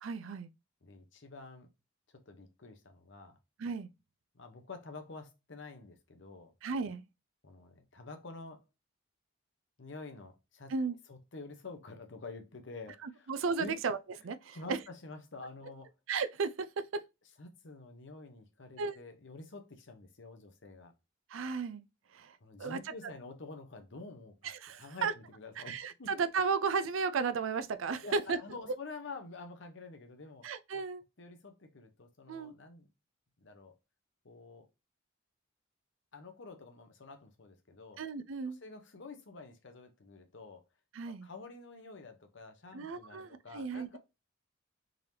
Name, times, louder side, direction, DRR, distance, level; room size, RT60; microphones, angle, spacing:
voice 1, 0.0-0.5 3.6-3.9 6.6-7.0 10.7-11.0 13.0-14.0 14.2-14.8 16.1-17.0 18.8-19.0 21.3-21.8 22.1-22.8 24.4-25.1 25.6-28.4 30.4-31.0 32.3-32.5 38.0-38.6 40.9-41.3 42.7-44.0, right 5 dB, 80° right, 0.4 m, -34 dB
voice 2, 0.8-1.7 2.1-3.4 4.3-6.5 7.4-8.6 9.8-13.3 13.6-13.8 14.5-15.9 17.4-20.9 22.4-24.5 24.8-26.1 28.0-30.5 31.2-32.9 33.4-33.7 34.2-34.7 36.1-38.0 38.4-40.6 41.0-44.0, left 3 dB, 65° left, 0.9 m, -48 dB
3.8 x 3.3 x 2.7 m
head